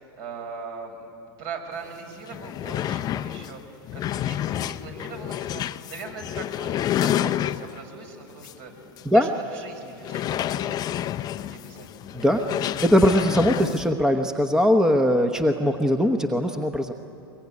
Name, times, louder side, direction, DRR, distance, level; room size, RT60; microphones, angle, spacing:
voice 1, 0.2-1.1 1.4-8.7 9.0-12.3, right 4 dB, 55° right, 4 dB, 5.3 m, -40 dB
sound 1, 1.8-1.9 2.2-7.9 8.4-8.6 9.0-9.1 10.0-13.8, left 11 dB, 30° left, 0.6 m, -29 dB
voice 2, 12.8-16.9, equal, 5° right, 6 dB, 1.0 m, -20 dB
23.0 x 22.0 x 9.7 m, 2.8 s
hypercardioid pair, 120°, 12 cm